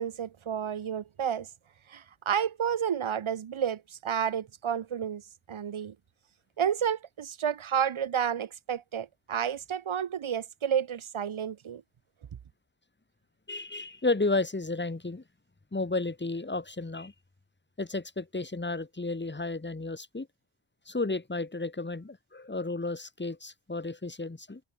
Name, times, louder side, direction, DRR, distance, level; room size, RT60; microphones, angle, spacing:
voice 1, 0.0-1.5 1.9-5.2 5.5-5.9 6.6-11.8, right 8 dB, 75° right, 4.5 m, -31 dB
voice 2, 13.5-15.2 15.7-17.1 17.8-20.3 20.9-24.6, left 3 dB, 20° left, 4.7 m, -32 dB
cardioid pair, 70°, 48 cm